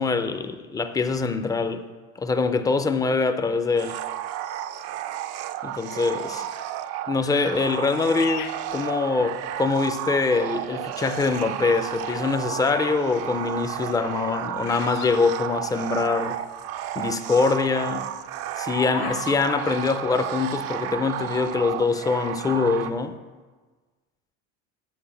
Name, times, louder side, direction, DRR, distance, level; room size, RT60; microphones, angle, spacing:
voice 1, 0.0-1.8 2.2-4.0 5.6-6.4 7.1-16.4 17.0-18.1 18.6-23.2, left 4 dB, 10° left, 8 dB, 0.4 m, -24 dB
sound 1, 3.8-22.9, right 11 dB, 50° right, 0.5 m, -32 dB
Bird vocalization bird call bird song, 8.1-9.6 10.3-10.7 11.5-12.4 12.7-16.2 16.4-16.5 16.7-17.1 17.5-19.4, left 12 dB, 60° left, 0.5 m, -38 dB
9.1 x 4.4 x 7.3 m, 1.3 s
cardioid pair, 130°, 31 cm